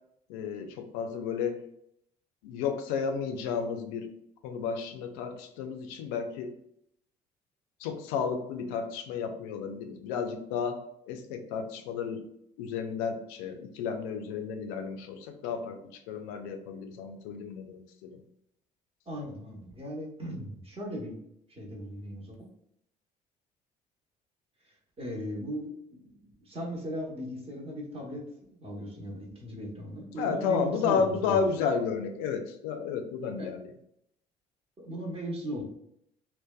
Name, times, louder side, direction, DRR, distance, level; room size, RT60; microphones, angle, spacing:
voice 1, 0.3-1.6 2.4-4.1 4.4-6.5 7.8-10.8 11.1-12.2 12.6-15.8 16.1-18.2 30.2-33.7, left 6 dB, 75° left, 5 dB, 0.4 m, -32 dB
voice 2, 19.1-21.2 21.5-22.5 24.6-28.2 28.6-31.4 33.4-33.5 34.8-35.6, equal, 30° right, -1 dB, 0.9 m, -38 dB
2.6 x 2.1 x 2.2 m, 0.74 s
hypercardioid pair, 55°, 20 cm